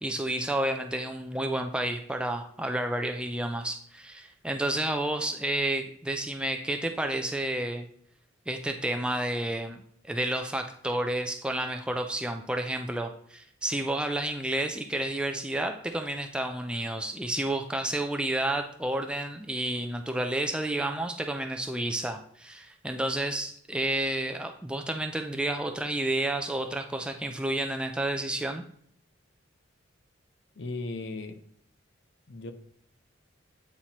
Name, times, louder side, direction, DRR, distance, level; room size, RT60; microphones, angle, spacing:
voice 1, 0.0-7.9 8.5-28.6, right 1 dB, 5° right, 0.3 m, -30 dB
voice 2, 30.6-31.4 32.3-32.5, left 3 dB, 60° left, 0.6 m, -36 dB
8.7 x 4.2 x 2.9 m
head